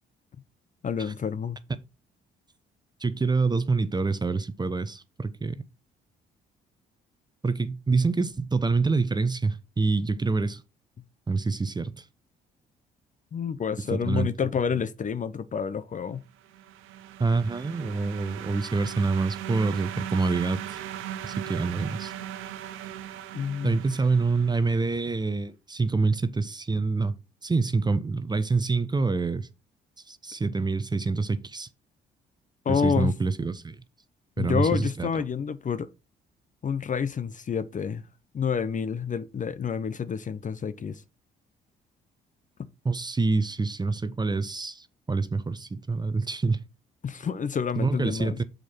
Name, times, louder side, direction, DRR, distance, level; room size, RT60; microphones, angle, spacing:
voice 1, 0.8-1.6 13.3-16.2 23.3-23.8 32.6-33.1 34.4-35.9 36.6-38.0 38.3-41.0 47.0-48.4, left 7 dB, 35° left, 0.7 m, -28 dB
voice 2, 3.0-5.6 7.4-10.6 11.3-12.0 13.9-14.3 17.2-20.8 21.2-22.1 23.6-27.1 27.4-29.5 30.1-31.7 32.7-33.8 34.4-35.2 42.8-46.6 47.8-48.4, right 3 dB, 20° right, 0.8 m, -26 dB
sound 1, 16.4-25.0, right 11 dB, 75° right, 0.6 m, -38 dB
6.6 x 4.6 x 4.3 m
hypercardioid pair, 55°, 21 cm